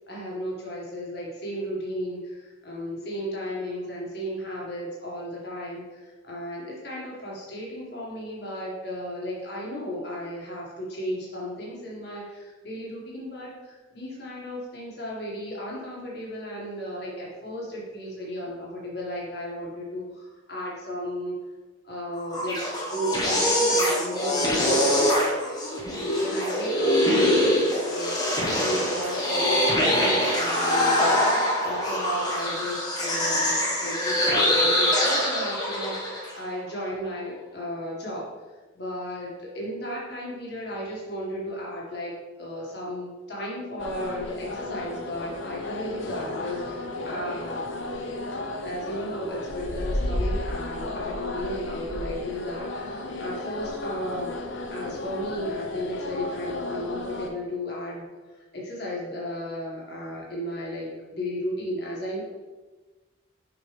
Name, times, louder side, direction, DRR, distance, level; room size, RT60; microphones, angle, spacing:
voice 1, 0.1-21.4 21.8-25.4 26.1-31.3 31.6-38.3 38.7-47.7 48.6-54.4 54.7-58.1 58.5-62.2, equal, 55° left, -4 dB, 1.8 m, -34 dB
sound 1, 22.2-36.3, left 1 dB, 20° left, 1.1 m, -24 dB
sound 2, 43.8-57.3, left 2 dB, 75° left, 0.7 m, -33 dB
6.3 x 5.1 x 3.4 m, 1.2 s
head